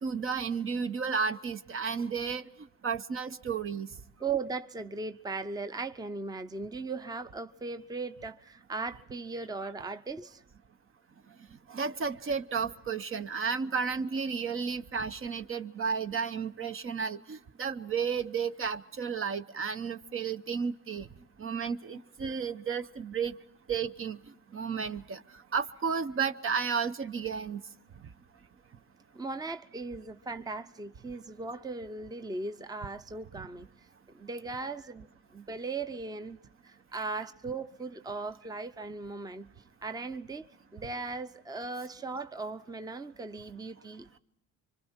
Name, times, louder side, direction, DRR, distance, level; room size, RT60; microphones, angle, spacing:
voice 1, 0.0-2.5 2.8-3.9 11.7-21.1 21.4-23.4 23.7-24.2 24.5-25.2 25.5-27.6 37.1-37.3, right 6 dB, 45° right, 0.9 m, -32 dB
voice 2, 4.2-10.4 29.1-33.7 34.1-35.1 35.3-39.5 39.8-40.5 40.7-44.2, right 3 dB, 15° right, 0.7 m, -38 dB
26.5 x 25.0 x 4.4 m
cardioid pair, 90°, 30 cm